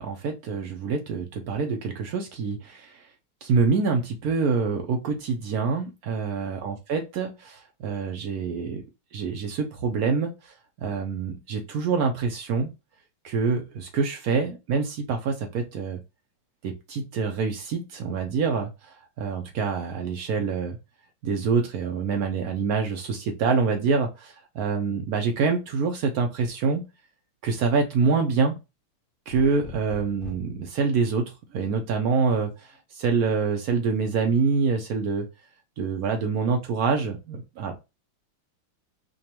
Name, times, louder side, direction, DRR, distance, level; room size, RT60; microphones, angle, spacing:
voice 1, 0.0-2.9 3.4-8.8 9.1-12.7 13.2-16.0 16.6-18.7 19.2-20.8 21.2-26.9 27.4-28.6 29.3-32.5 32.9-35.3 35.8-37.8, right 5 dB, 85° right, 4 dB, 0.8 m, -26 dB
sound 1, 29.3-30.6 32.2-32.8, left 6 dB, 90° left, 0.8 m, -42 dB
5.0 x 2.3 x 2.8 m, 0.25 s
omnidirectional pair, 2.4 m